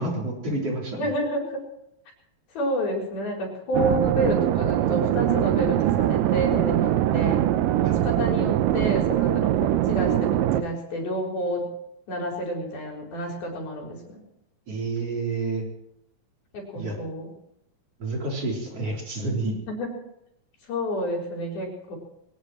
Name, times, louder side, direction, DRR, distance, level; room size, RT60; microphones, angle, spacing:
voice 1, 0.0-1.0 7.8-7.9 14.7-15.6 16.7-16.9 18.0-19.5, right 2 dB, 40° right, -1 dB, 4.6 m, -29 dB
voice 2, 0.9-1.6 2.5-7.4 7.8-11.7 12.1-14.2 16.5-17.3 19.7-19.9 20.7-22.0, equal, 90° left, -1 dB, 6.1 m, -29 dB
sound 1, 3.7-10.6, right 13 dB, 75° right, 2.2 m, -22 dB
22.0 x 19.0 x 3.1 m, 0.78 s
omnidirectional pair, 4.2 m